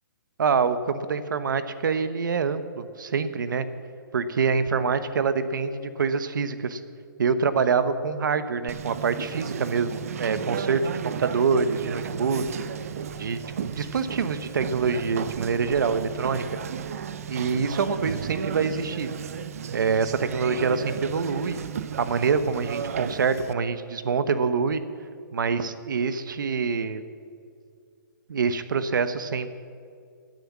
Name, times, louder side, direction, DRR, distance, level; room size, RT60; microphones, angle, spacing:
voice 1, 0.4-3.7 4.1-6.8 7.2-12.4 13.1-13.4 13.8-16.4 17.3-19.1 19.7-21.6 22.0-24.8 25.3-27.0 28.3-29.5, right 5 dB, 65° right, 12 dB, 1.0 m, -25 dB
Conversation, 8.7-23.5, right 7 dB, 45° right, 0.6 m, -34 dB
17.0 x 9.3 x 7.3 m, 2.3 s
hypercardioid pair, 175°, 11 cm